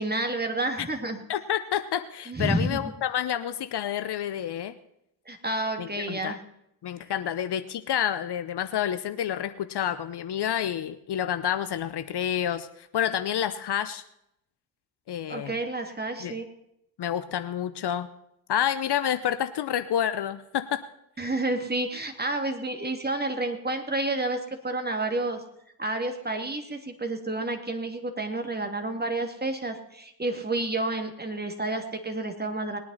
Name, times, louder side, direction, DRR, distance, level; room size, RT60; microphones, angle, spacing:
voice 1, 0.0-1.2 2.3-2.8 5.3-6.4 15.3-16.5 21.2-24.4 24.6-25.4 25.8-32.8, right 2 dB, 20° right, 5 dB, 2.4 m, -30 dB
voice 2, 1.3-4.7 5.8-6.4 6.8-14.0 15.1-15.6 16.2-16.4 17.0-18.1 18.5-20.8, left 10 dB, 55° left, 12 dB, 0.9 m, -29 dB
20.5 x 9.4 x 4.2 m, 0.78 s
hypercardioid pair, 40°, 47 cm